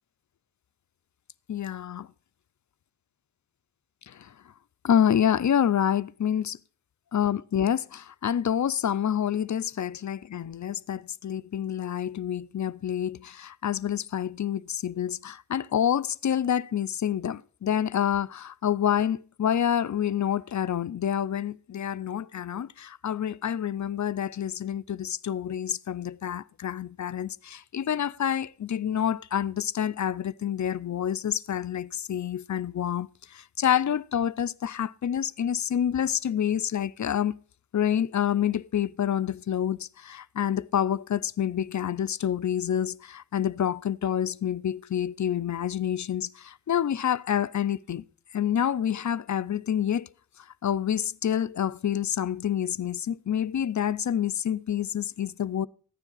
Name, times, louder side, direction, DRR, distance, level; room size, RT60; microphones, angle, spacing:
voice 1, 1.5-2.1 4.1-4.3 4.8-6.6 7.1-37.4 37.7-48.0 48.3-50.1 50.4-55.7, left 9 dB, 55° left, 0.5 m, -28 dB
14.5 x 9.8 x 3.9 m
wide cardioid pair, 70°, 34 cm